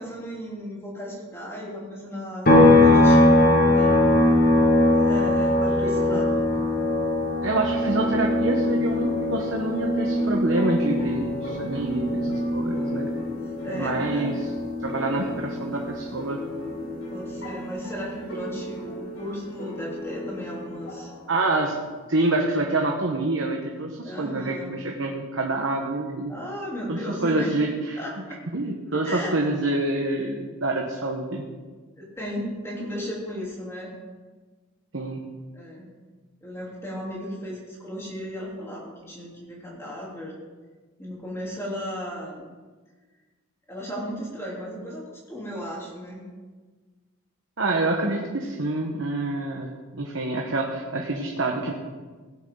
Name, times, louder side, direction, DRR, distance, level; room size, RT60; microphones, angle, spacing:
voice 1, 0.0-4.1 4.9-6.7 13.6-14.4 17.1-21.1 24.0-24.7 26.3-27.5 27.9-28.4 29.0-29.4 32.0-33.9 35.5-35.9 36.4-40.3 41.0-42.4 43.7-46.2, equal, 10° left, -5 dB, 3.3 m, -35 dB
sound 1, 2.5-16.0 16.3-18.6, left 1 dB, 45° left, 1.9 m, -22 dB
voice 2, 5.8-6.2 7.4-13.1 13.7-14.5 14.8-16.4 21.3-21.7 22.1-26.3 26.9-28.0 28.5-31.4 34.9-35.2 47.6-51.7, right 2 dB, 60° right, 1 dB, 1.2 m, -27 dB
sound 2, 8.0-21.7, left 1 dB, 75° left, 4.6 m, -39 dB
17.0 x 11.0 x 3.9 m, 1.4 s
head